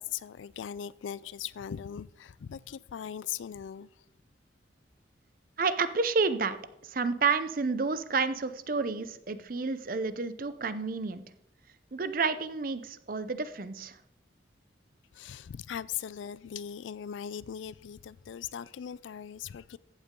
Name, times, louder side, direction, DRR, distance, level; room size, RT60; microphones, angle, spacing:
voice 1, 0.0-3.9 15.1-19.8, left 9 dB, 80° left, 0.3 m, -39 dB
voice 2, 5.6-6.6 6.8-11.2 11.9-14.0, right 4 dB, 45° right, 0.6 m, -30 dB
14.5 x 8.1 x 3.7 m
head